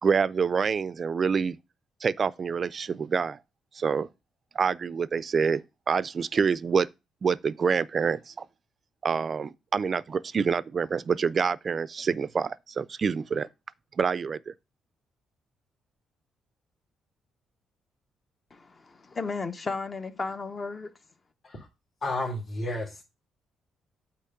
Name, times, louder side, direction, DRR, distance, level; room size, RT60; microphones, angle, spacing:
voice 1, 0.0-1.6 2.0-3.4 3.7-4.1 4.5-6.9 7.2-8.4 9.0-13.5 14.0-14.5, right 6 dB, 45° right, 0.4 m, -27 dB
voice 2, 18.5-20.9, left 4 dB, 35° left, 0.8 m, -34 dB
voice 3, 22.0-23.0, left 1 dB, 50° left, 2.4 m, -31 dB
8.4 x 3.0 x 5.7 m
cardioid pair, 90°, 0 cm